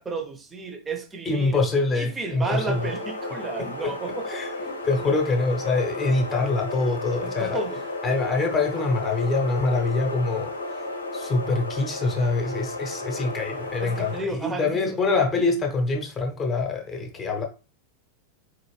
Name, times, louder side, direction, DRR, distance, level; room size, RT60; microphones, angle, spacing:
voice 1, 0.0-1.6 1.9-4.7 7.2-7.8 13.8-15.0, right 3 dB, 15° right, 0.7 m, -33 dB
voice 2, 1.2-2.9 3.6-3.9 4.3-4.5 4.8-7.6 8.0-10.5 11.1-17.4, left 3 dB, 25° left, 0.9 m, -25 dB
sound 1, 2.4-14.2, left 2 dB, 85° left, 0.9 m, -33 dB
4.2 x 2.5 x 3.2 m
figure-of-eight pair, 90°, 0 cm